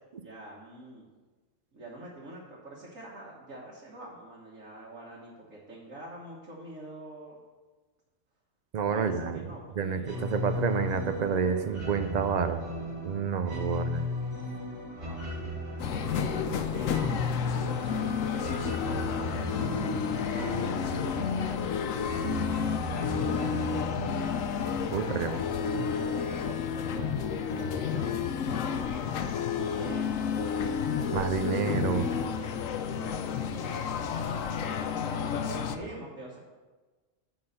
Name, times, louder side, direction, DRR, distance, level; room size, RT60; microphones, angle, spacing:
voice 1, 0.2-1.1 1.7-7.4 8.9-10.5 13.7-14.0 14.9-15.9 16.2-17.1 17.8-23.0 25.0-30.9 32.9-36.4, right 1 dB, 85° right, -5 dB, 1.7 m, -46 dB
voice 2, 8.7-9.4 9.8-12.6 13.0-14.0 24.9-25.4 25.7-25.9 31.1-32.1, right 6 dB, 60° right, 9 dB, 0.4 m, -29 dB
sound 1, 10.0-25.5, left 1 dB, 25° right, 3.2 m, -36 dB
sound 2, 15.8-35.8, left 7 dB, 90° left, 1.0 m, -31 dB
9.7 x 4.0 x 6.6 m, 1.3 s
omnidirectional pair, 1.3 m